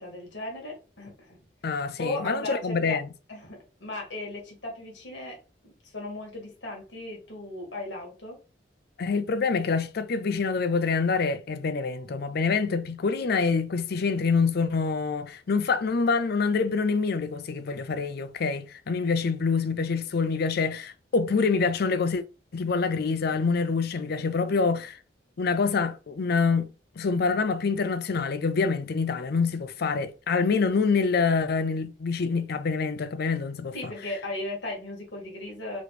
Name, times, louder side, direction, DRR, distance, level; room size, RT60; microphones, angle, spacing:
voice 1, 0.0-1.4 2.0-3.0 3.3-5.4 5.6-8.4 33.7-35.8, left 2 dB, 80° left, 2.0 m, -36 dB
voice 2, 1.6-3.1 9.0-22.2 22.5-25.0 25.4-26.7 27.0-33.9, left 4 dB, 60° left, 0.5 m, -26 dB
4.1 x 3.0 x 3.2 m
head